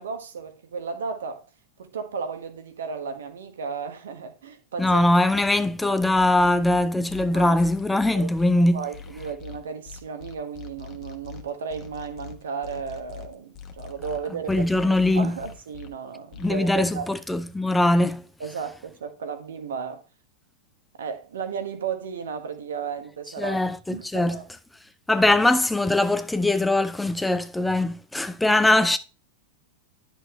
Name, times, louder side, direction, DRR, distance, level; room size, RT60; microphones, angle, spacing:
voice 1, 0.0-1.4 1.8-5.0 5.3-5.4 7.3-7.6 8.1-8.3 8.7-17.1 18.4-20.0 21.0-23.6 23.9-24.5, right 6 dB, 65° right, 1.3 m, -34 dB
voice 2, 4.8-8.8 14.5-15.4 16.4-18.2 23.4-24.4 25.1-29.0, left 2 dB, 5° left, 0.5 m, -21 dB
sound 1, 6.2-8.5 8.9-15.9 16.3-16.5, left 8 dB, 35° left, 1.2 m, -42 dB
11.0 x 6.4 x 3.2 m
figure-of-eight pair, 90°, 0 cm